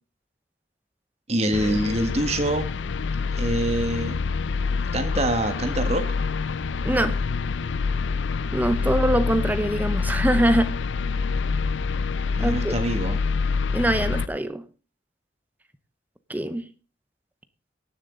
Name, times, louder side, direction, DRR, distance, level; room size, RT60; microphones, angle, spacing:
voice 1, 1.3-2.7 3.3-4.2 4.9-6.1 8.8-8.9 12.3-13.2, right 1 dB, 35° right, 8 dB, 1.5 m, -25 dB
sound 1, 1.5-14.3, left 4 dB, 75° left, 0.5 m, -26 dB
voice 2, 6.8-7.2 8.5-10.7 12.4-12.7 13.7-14.6 16.3-16.6, right 1 dB, 10° right, 11 dB, 0.7 m, -23 dB
17.5 x 7.2 x 3.8 m, 0.34 s
head